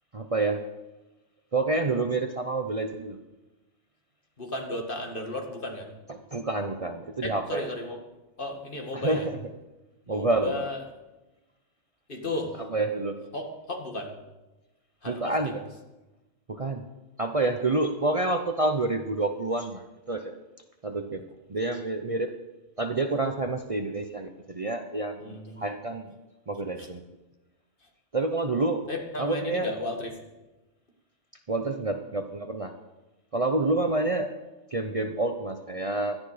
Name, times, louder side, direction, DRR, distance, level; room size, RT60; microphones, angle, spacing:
voice 1, 0.1-0.6 1.5-3.2 6.1-7.6 8.9-9.4 10.1-10.7 12.7-13.2 15.1-15.6 16.5-16.9 17.2-19.8 20.1-20.3 20.8-22.3 22.8-26.1 26.5-27.0 28.1-28.9 29.2-29.7 31.5-32.7 33.3-34.3 34.7-36.2, right 2 dB, 35° right, 5 dB, 0.8 m, -28 dB
voice 2, 4.4-5.9 7.2-8.0 8.4-9.3 10.1-10.8 12.1-12.6 13.3-14.2 15.0-15.6 25.2-25.8 26.8-26.9 28.9-30.2, left 2 dB, 45° left, 2 dB, 2.3 m, -34 dB
17.0 x 12.0 x 5.0 m, 1.1 s
omnidirectional pair, 1.2 m